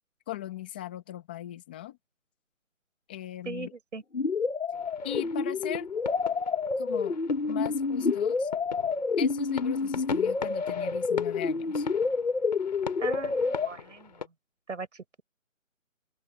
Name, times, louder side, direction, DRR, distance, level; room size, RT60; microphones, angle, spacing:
voice 1, 0.3-2.0 3.1-3.7 5.0-5.9 6.8-7.2 7.5-8.5 9.2-11.9, left 13 dB, 5° left, 1.5 m, -38 dB
voice 2, 3.4-4.0 13.0-14.2 14.7-15.2, right 4 dB, 60° right, 4.9 m, -39 dB
sound 1, 4.1-13.7, left 4 dB, 60° left, 2.1 m, -28 dB
sound 2, 4.7-14.3, left 6 dB, 30° left, 3.3 m, -42 dB
open air
figure-of-eight pair, 170°, 41 cm